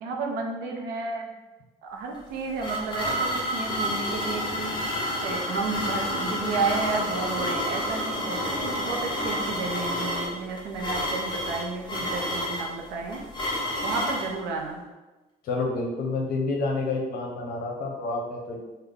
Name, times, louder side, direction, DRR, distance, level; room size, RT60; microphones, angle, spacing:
voice 1, 0.0-1.3 1.8-13.2 13.8-14.8, right 4 dB, 90° right, 1 dB, 0.6 m, -32 dB
sound 1, 2.1-14.3, equal, 25° left, 0.8 m, -29 dB
voice 2, 15.4-18.6, left 3 dB, 65° left, 0 dB, 0.8 m, -29 dB
3.6 x 2.2 x 3.3 m, 1.1 s
cardioid pair, 110°, 17 cm